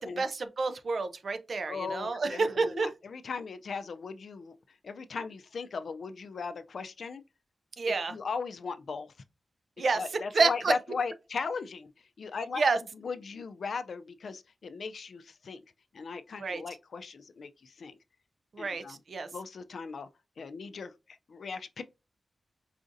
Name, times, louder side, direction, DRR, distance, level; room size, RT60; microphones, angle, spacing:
voice 1, 0.0-2.9 7.8-8.1 9.8-10.0 10.3-10.7 12.6-12.8 16.4-16.6 18.5-19.3, right 4 dB, 60° right, 0.4 m, -29 dB
voice 2, 1.7-7.2 7.9-9.1 9.8-11.9 12.2-12.6 12.9-15.6 15.9-18.0 18.6-19.0 19.3-20.1 20.4-21.8, left 5 dB, 75° left, 0.3 m, -38 dB
4.8 x 2.5 x 2.5 m
wide cardioid pair, 140°, 0 cm